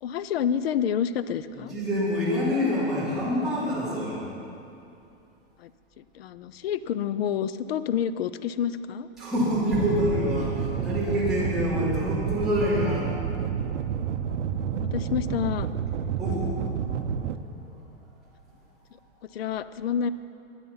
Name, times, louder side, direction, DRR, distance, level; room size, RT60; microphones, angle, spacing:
voice 1, 0.0-1.7 5.6-5.7 6.0-9.1 14.7-15.7 19.3-20.1, left 8 dB, 60° left, 14 dB, 0.6 m, -28 dB
voice 2, 1.5-4.2 9.2-13.1 16.2-16.5 17.1-17.3, left 1 dB, ahead, -12 dB, 3.1 m, -26 dB
sound 1, 9.7-17.4, right 8 dB, 80° right, 0.8 m, -29 dB
21.0 x 7.2 x 5.6 m, 2.7 s
supercardioid pair, 180°, 35 cm